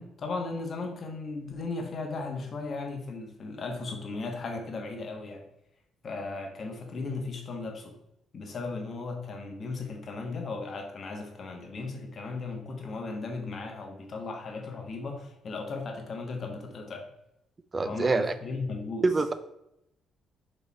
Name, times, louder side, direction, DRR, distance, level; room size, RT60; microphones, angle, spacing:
voice 1, 0.0-5.4 6.0-7.9 8.3-17.1 17.8-19.0, left 3 dB, 50° left, 3 dB, 1.3 m, -36 dB
voice 2, 17.7-18.3 19.0-19.3, right 3 dB, 30° right, 11 dB, 0.5 m, -25 dB
5.1 x 4.3 x 4.6 m, 0.83 s
cardioid pair, 90°, 0 cm